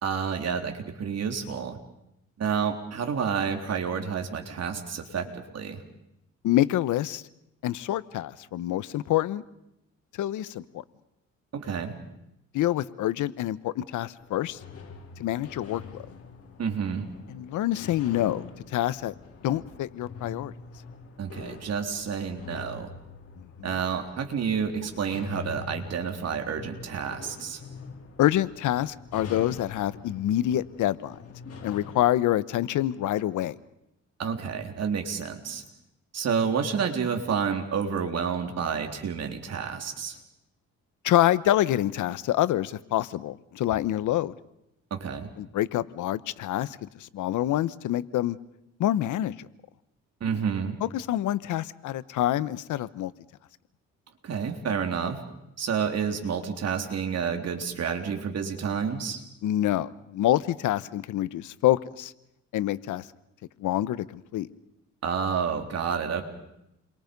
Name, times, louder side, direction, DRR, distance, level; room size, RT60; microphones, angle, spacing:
voice 1, 0.0-1.8 2.4-5.8 11.5-12.0 16.6-17.1 21.2-22.9 23.6-27.6 34.2-35.6 36.1-40.2 44.9-45.3 50.2-50.8 54.2-55.2 55.6-59.2 65.0-66.2, right 6 dB, 55° right, 5 dB, 3.7 m, -29 dB
voice 2, 6.4-7.2 7.6-9.4 10.2-10.8 12.5-14.6 15.2-16.0 17.3-19.1 19.4-20.5 23.6-23.7 28.2-31.2 31.6-33.5 41.0-44.3 45.4-48.4 48.8-49.3 50.8-53.1 59.4-62.1 62.5-63.1 63.6-64.5, left 13 dB, 80° left, 17 dB, 1.1 m, -26 dB
sound 1, 14.2-32.0, left 5 dB, 50° left, 5.2 m, -44 dB
30.0 x 23.5 x 5.4 m, 0.85 s
cardioid pair, 90°, 30 cm